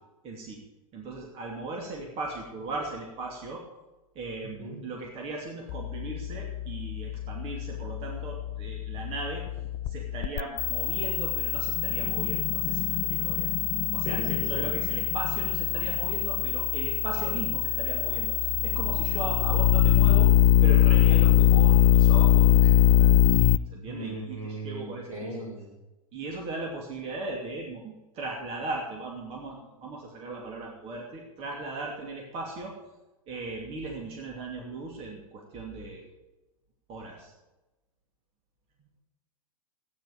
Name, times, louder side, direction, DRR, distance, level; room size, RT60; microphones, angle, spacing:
voice 1, 0.2-0.6 0.9-3.6 4.1-9.4 9.9-13.5 13.9-20.3 20.6-25.4 26.1-32.7 33.3-36.1 36.9-37.3, right 3 dB, 35° right, 0 dB, 2.7 m, -38 dB
sound 1, 5.7-23.6, left 13 dB, 35° left, 0.4 m, -23 dB
voice 2, 14.0-14.7 23.9-25.7, right 1 dB, 70° right, -1 dB, 5.2 m, -37 dB
14.5 x 9.7 x 5.3 m, 1.0 s
figure-of-eight pair, 95°, 18 cm